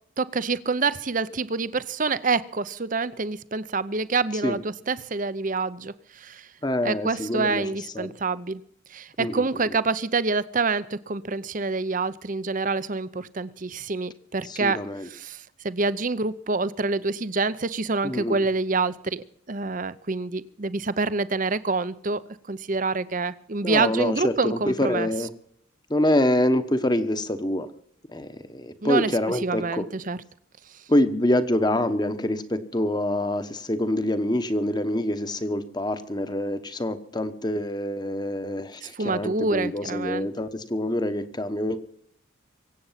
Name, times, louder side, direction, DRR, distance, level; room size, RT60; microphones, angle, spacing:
voice 1, 0.2-6.5 6.8-8.6 8.9-22.2 22.5-25.1 28.8-29.1 29.4-30.2 30.7-30.8 38.8-40.3, right 3 dB, 40° right, 16 dB, 0.7 m, -27 dB
voice 2, 6.6-7.7 7.9-8.1 9.2-9.4 14.4-15.1 18.0-18.4 23.6-25.3 25.9-27.7 28.1-29.8 30.9-41.8, left 1 dB, 20° left, 10 dB, 1.1 m, -26 dB
23.5 x 8.6 x 5.7 m, 0.66 s
head